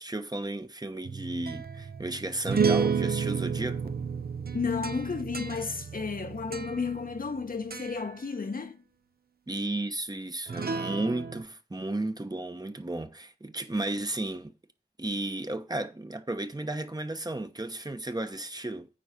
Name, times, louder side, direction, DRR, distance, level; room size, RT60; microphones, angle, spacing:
voice 1, 0.0-3.9 9.5-14.5 15.0-18.9, right 2 dB, 25° right, 1.0 m, -34 dB
sound 1, 1.0-7.4 7.7-8.1 10.5-11.4, right 6 dB, 70° right, 0.7 m, -31 dB
voice 2, 4.5-8.8, left 5 dB, 60° left, 0.9 m, -32 dB
9.4 x 4.1 x 6.6 m
wide cardioid pair, 55°, 16 cm